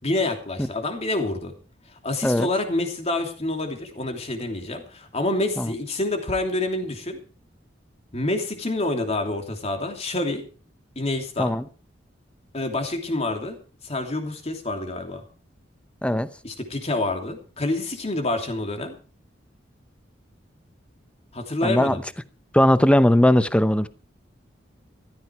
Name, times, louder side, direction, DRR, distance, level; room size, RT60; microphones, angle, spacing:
voice 1, 0.0-1.5 2.0-7.2 8.1-10.4 10.9-11.5 12.5-13.6 13.8-15.2 16.4-18.9 21.3-22.0, left 2 dB, 35° left, 3.0 m, -27 dB
voice 2, 21.6-22.0 22.5-23.9, left 1 dB, 5° left, 0.8 m, -18 dB
14.5 x 14.0 x 4.7 m
head